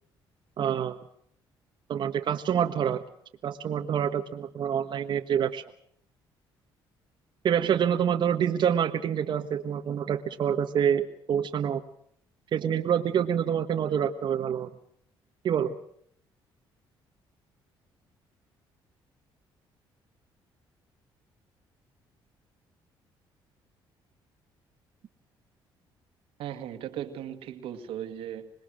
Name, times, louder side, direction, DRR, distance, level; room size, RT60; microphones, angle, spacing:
voice 1, 0.6-1.0 1.9-3.0 3.4-5.6 7.4-11.8 12.5-14.7 15.4-15.7, right 8 dB, 55° right, 1.4 m, -26 dB
voice 2, 26.4-28.5, right 10 dB, 80° right, 2.2 m, -37 dB
26.5 x 20.0 x 6.5 m
cardioid pair, 90°, 9 cm